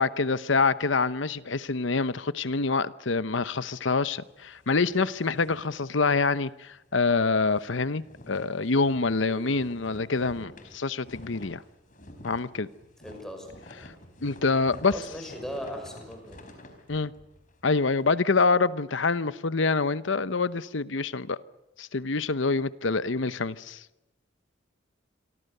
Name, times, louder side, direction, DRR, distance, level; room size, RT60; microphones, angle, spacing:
voice 1, 0.0-11.6 12.2-12.7 14.2-14.9 16.9-17.1 17.6-21.4 21.8-23.8, left 4 dB, 70° left, 0.9 m, -26 dB
sound 1, 4.2-6.5 6.8-7.0 7.3-18.5, left 1 dB, 40° left, 4.3 m, -50 dB
voice 2, 9.3-9.6 13.0-13.5 14.9-16.4, equal, ahead, 6.2 m, -38 dB
27.5 x 23.5 x 6.8 m
head